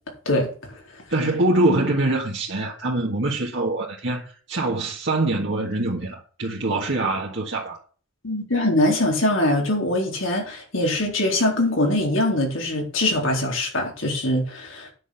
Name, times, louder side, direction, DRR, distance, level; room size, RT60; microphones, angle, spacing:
voice 1, 0.3-0.8 8.2-14.9, left 1 dB, 85° left, 4.0 m, -23 dB
voice 2, 1.1-7.8, right 2 dB, 65° right, 1.8 m, -24 dB
9.9 x 6.3 x 7.0 m
head